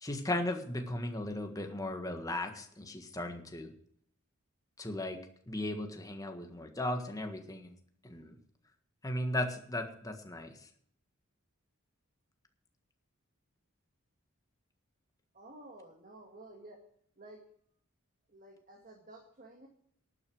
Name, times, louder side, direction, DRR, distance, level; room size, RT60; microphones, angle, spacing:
voice 1, 0.0-3.7 4.8-5.2 5.5-7.7 8.0-8.4 9.0-10.7, left 1 dB, 15° left, 5 dB, 1.6 m, -36 dB
voice 2, 15.3-16.8 17.2-17.4 18.3-19.7, right 2 dB, 40° right, 2 dB, 2.0 m, -52 dB
12.0 x 9.3 x 6.3 m, 0.65 s
head